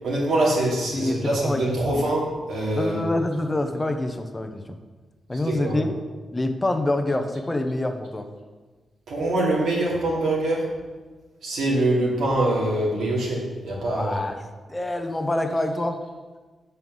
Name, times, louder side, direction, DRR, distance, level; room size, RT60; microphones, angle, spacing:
voice 1, 0.0-2.2 2.5-3.0 5.6-5.7 9.1-10.7 11.4-14.1, right 1 dB, 85° right, -4 dB, 2.8 m, -24 dB
voice 2, 0.9-2.0 2.7-4.7 5.3-6.0 6.3-8.3 13.9-14.4 14.7-16.0, left 1 dB, 20° left, 6 dB, 0.8 m, -26 dB
7.5 x 5.5 x 6.3 m, 1.3 s
cardioid pair, 95°, 0 cm